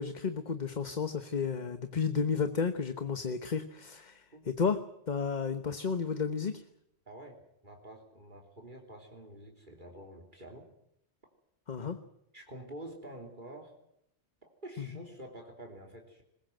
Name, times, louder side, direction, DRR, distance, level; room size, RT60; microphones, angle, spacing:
voice 1, 0.0-4.8 5.1-6.6 11.7-12.0 14.8-14.9, left 5 dB, 45° left, 9 dB, 1.2 m, -32 dB
voice 2, 7.6-10.7 12.3-13.7 14.4-16.2, right 1 dB, 45° right, 3 dB, 3.4 m, -48 dB
22.5 x 21.0 x 7.8 m, 0.78 s
omnidirectional pair, 1.1 m